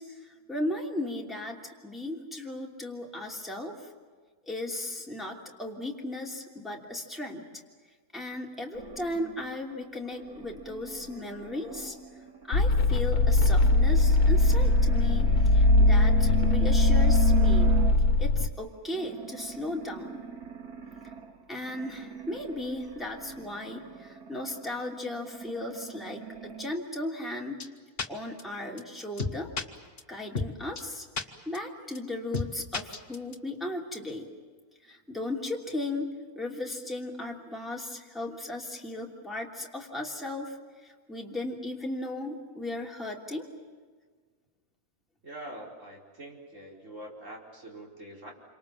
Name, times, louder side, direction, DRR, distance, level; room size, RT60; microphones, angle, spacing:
voice 1, 0.0-3.9 4.5-7.5 8.1-11.9 12.5-17.7 18.2-20.2 21.5-27.6 28.1-29.5 30.1-31.0 31.5-34.3 34.8-36.1 36.3-40.6 40.8-43.5, left 1 dB, ahead, -2 dB, 2.9 m, -36 dB
sound 1, 8.7-18.4 18.9-26.7, right 10 dB, 80° right, 2.5 m, -38 dB
sound 2, 12.5-18.5, left 2 dB, 80° left, 1.5 m, -21 dB
sound 3, 27.6-27.7 28.0-28.1 28.4-28.5 28.8-28.9 29.2-29.6 30.0-30.1 30.4-30.5 30.8-30.9 31.2-31.3 31.6-31.7 32.0-32.1 32.3-32.5 32.7-33.4, left 4 dB, 40° left, 1.6 m, -31 dB
voice 2, 45.2-48.3, right 1 dB, 55° right, -2 dB, 5.2 m, -44 dB
28.0 x 26.0 x 7.4 m, 1.5 s
omnidirectional pair, 1.6 m